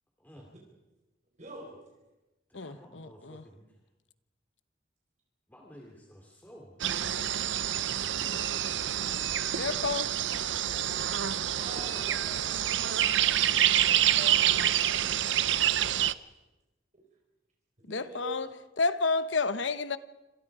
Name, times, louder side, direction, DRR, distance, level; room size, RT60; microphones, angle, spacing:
voice 1, 0.2-0.5 2.5-3.7 5.5-6.8, equal, 10° left, 3.2 m, -52 dB
voice 2, 1.4-1.8 7.8-9.0 11.6-11.9 14.2-14.7 14.9-15.1 16.9-17.0 17.8-18.5, equal, 40° right, 4.5 m, -45 dB
voice 3, 2.5-3.4 9.6-10.1 17.9-18.5 18.8-20.0, left 4 dB, 80° left, 1.1 m, -30 dB
sound 1, 6.8-16.1, right 11 dB, 75° right, 0.7 m, -27 dB
voice 4, 11.7-13.9, left 1 dB, 25° left, 5.7 m, -51 dB
27.0 x 27.0 x 5.0 m
head